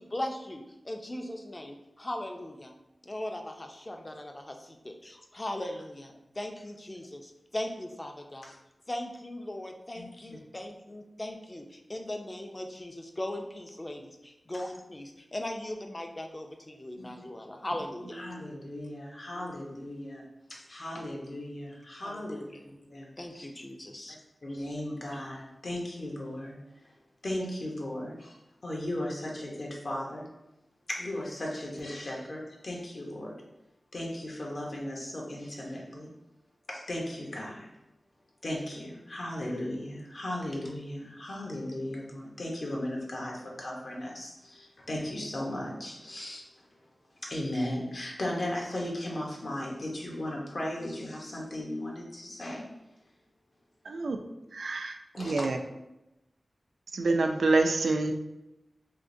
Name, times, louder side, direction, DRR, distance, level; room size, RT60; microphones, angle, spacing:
voice 1, 0.0-2.7 3.0-8.5 8.9-18.2 22.0-22.6 23.2-24.2, left 1 dB, 30° left, 3 dB, 0.5 m, -39 dB
voice 2, 10.0-10.4 17.0-17.1 18.2-20.2 20.5-23.5 24.1-26.6 27.2-30.3 30.9-33.4 33.9-36.1 36.7-37.7 38.4-46.5 47.2-52.7 55.1-55.5, left 1 dB, 60° left, -2 dB, 0.8 m, -36 dB
voice 3, 53.9-54.2 54.5-55.6 56.9-58.1, right 3 dB, 85° right, 5 dB, 0.3 m, -27 dB
3.6 x 2.8 x 2.6 m, 0.93 s
wide cardioid pair, 65°, 0 cm